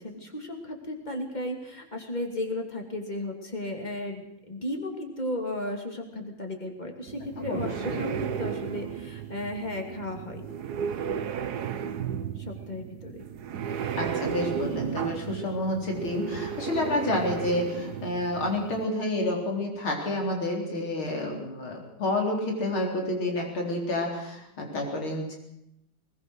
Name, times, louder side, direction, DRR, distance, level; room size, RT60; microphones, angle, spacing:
voice 1, 0.0-10.4 12.4-13.2, left 1 dB, 20° left, 3 dB, 3.0 m, -35 dB
tardis noise, 7.1-18.8, right 8 dB, 55° right, 1.4 m, -34 dB
voice 2, 7.4-8.0 14.0-25.4, left 1 dB, 85° left, 0 dB, 4.9 m, -29 dB
21.0 x 20.5 x 6.4 m, 0.83 s
omnidirectional pair, 2.2 m